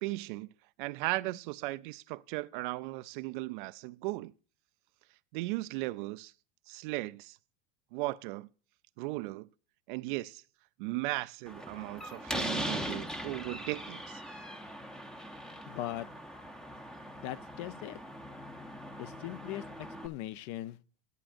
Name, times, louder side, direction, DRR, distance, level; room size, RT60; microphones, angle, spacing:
voice 1, 0.0-0.5 0.8-4.3 5.3-6.3 6.7-7.4 7.9-8.5 9.0-9.5 9.9-10.4 10.8-14.2, right 21 dB, 55° right, 0.4 m, -36 dB
Slam, 11.5-20.1, equal, ahead, 0.7 m, -41 dB
voice 2, 15.7-16.1 17.2-18.0 19.0-19.6 20.0-20.8, left 14 dB, 45° left, 0.6 m, -39 dB
12.0 x 10.5 x 2.5 m
supercardioid pair, 125°, 31 cm